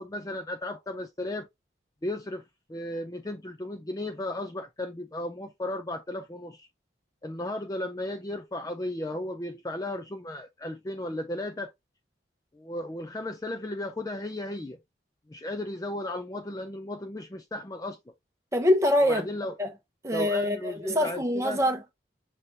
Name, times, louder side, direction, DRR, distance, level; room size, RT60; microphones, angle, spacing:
voice 1, 0.0-1.5 2.0-2.4 2.7-6.7 7.2-11.7 12.5-14.8 15.3-18.0 19.1-19.5 20.1-21.6, left 1 dB, 20° left, 0.4 m, -35 dB
voice 2, 18.5-19.3 19.6-19.7 20.0-21.9, left 1 dB, 15° right, 0.8 m, -24 dB
5.6 x 3.3 x 2.6 m
head